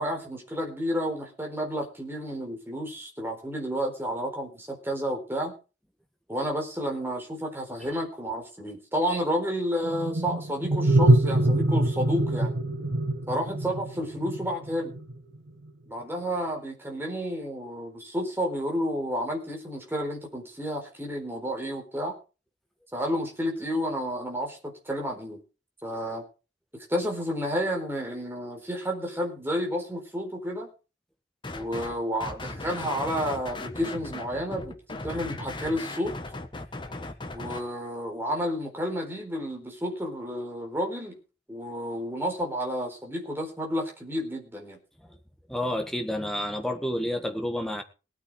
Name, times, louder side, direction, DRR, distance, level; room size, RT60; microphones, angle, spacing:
voice 1, 0.0-5.5 6.3-12.5 13.3-14.9 15.9-22.1 22.9-25.4 25.8-26.2 26.7-30.7 31.5-36.1 37.3-41.2 41.5-44.8, equal, 15° right, 1 dB, 4.2 m, -31 dB
sound 1, 9.8-15.2, right 1 dB, 90° right, 1.1 m, -24 dB
sound 2, 31.4-31.9 32.2-37.6, left 2 dB, 25° left, 1.4 m, -37 dB
voice 2, 45.5-47.8, left 1 dB, ahead, 4 dB, 1.7 m, -30 dB
18.5 x 9.0 x 4.9 m, 0.34 s
head